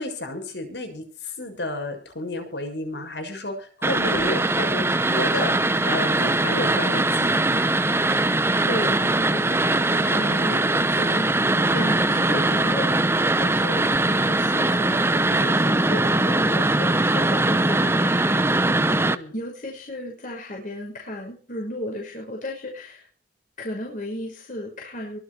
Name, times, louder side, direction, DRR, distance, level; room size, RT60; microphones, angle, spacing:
voice 1, 0.0-5.5 5.8-7.7 10.1-10.6 11.5-11.6 13.4-13.5 18.6-19.4, left 2 dB, 80° left, 5 dB, 6.7 m, -32 dB
sound 1, 3.8-19.2, right 2 dB, 15° right, 0.8 m, -21 dB
voice 2, 8.7-18.7 19.3-23.1 23.6-25.2, left 1 dB, 50° left, 0 dB, 5.8 m, -34 dB
24.0 x 8.3 x 4.3 m, 0.40 s
head